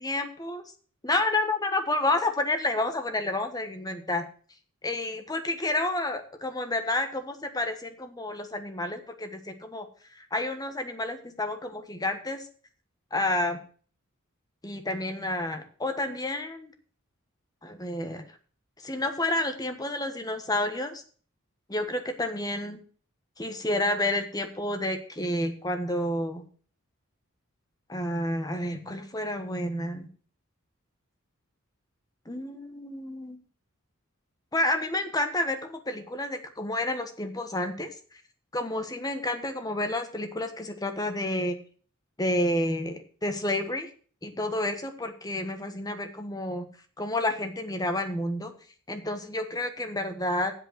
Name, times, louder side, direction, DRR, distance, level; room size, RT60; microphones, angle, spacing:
voice 1, 0.0-0.6 1.0-4.2 4.8-9.9 10.2-12.4 13.1-13.6 14.6-16.7 17.6-18.2 18.8-21.0 21.7-22.8 23.4-26.5 27.9-30.1 32.3-33.4 34.5-37.9 38.5-41.6 42.2-43.9 44.2-46.6 47.0-48.5 48.9-50.5, left 1 dB, 15° left, 7 dB, 1.3 m, -30 dB
8.0 x 7.7 x 7.9 m, 0.43 s
head